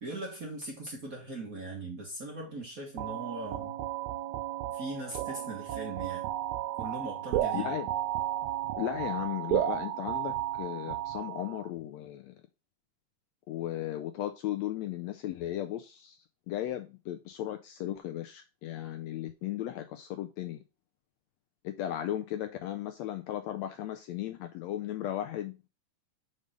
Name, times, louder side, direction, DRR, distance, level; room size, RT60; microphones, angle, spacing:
voice 1, 0.0-3.7 4.7-6.2 6.8-7.7, right 2 dB, 35° right, 1.5 m, -40 dB
sound 1, 3.0-11.7, right 12 dB, 80° right, 1.9 m, -33 dB
voice 2, 7.5-7.9 8.8-12.4 13.5-16.2 16.5-20.6 21.6-25.7, left 12 dB, 80° left, 1.6 m, -36 dB
5.5 x 5.4 x 5.0 m
omnidirectional pair, 3.5 m